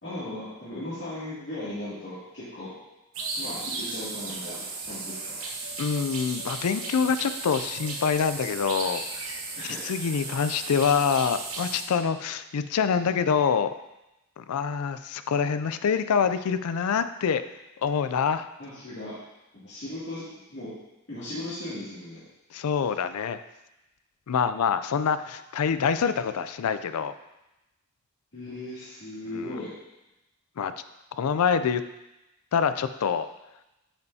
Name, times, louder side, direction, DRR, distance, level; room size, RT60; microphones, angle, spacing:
voice 1, 0.0-2.7 3.4-5.4 9.6-9.8 18.6-19.1 19.6-20.7 21.1-22.2 28.3-29.7, left 1 dB, 55° left, -13 dB, 2.5 m, -37 dB
sound 1, 3.1-11.8, right 3 dB, 70° right, 1.1 m, -35 dB
voice 2, 5.8-9.4 9.6-13.7 14.4-17.4 17.8-18.5 22.5-23.4 24.3-27.1 29.3-29.6 30.6-30.7 31.2-31.8 32.5-33.3, left 6 dB, 80° left, 11 dB, 0.4 m, -26 dB
8.8 x 5.4 x 2.7 m, 0.96 s
head